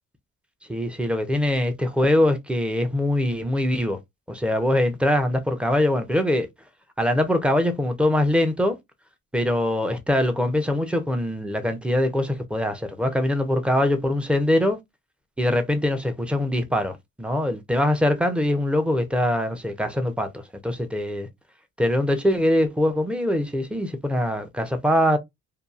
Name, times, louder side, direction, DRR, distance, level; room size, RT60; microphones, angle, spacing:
voice 1, 0.7-4.0 4.3-6.5 7.0-8.8 9.3-14.8 15.4-20.3 20.6-21.3 21.8-25.2, left 1 dB, 5° right, 0.6 m, -23 dB
2.7 x 2.3 x 2.3 m
cardioid pair, 90°, 30 cm